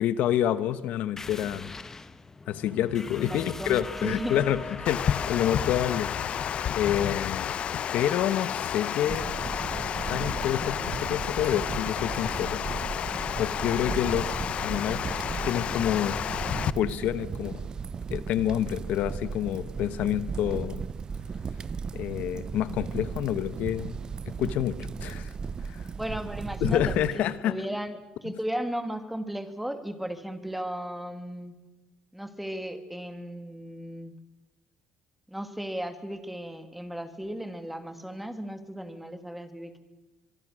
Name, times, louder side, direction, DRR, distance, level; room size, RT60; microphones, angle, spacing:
voice 1, 0.0-1.7 2.5-7.5 7.9-9.2 10.1-12.6 13.4-14.3 14.6-15.0 15.4-16.2 16.7-17.6 18.1-20.8 21.9-24.0 24.3-25.3 25.6-25.8 26.6-27.6, left 11 dB, 75° left, 15 dB, 1.0 m, -28 dB
sound 1, 1.2-10.4, left 3 dB, 20° left, 1.0 m, -42 dB
voice 2, 3.2-4.4 25.9-31.5 32.1-34.1 35.3-39.8, right 1 dB, 5° right, 9 dB, 2.1 m, -35 dB
Water, 4.8-16.7, left 9 dB, 50° left, 0.7 m, -31 dB
sound 2, 9.1-27.1, right 5 dB, 30° right, 0.7 m, -36 dB
24.5 x 23.5 x 6.3 m, 1.1 s
cardioid pair, 135°, 2 cm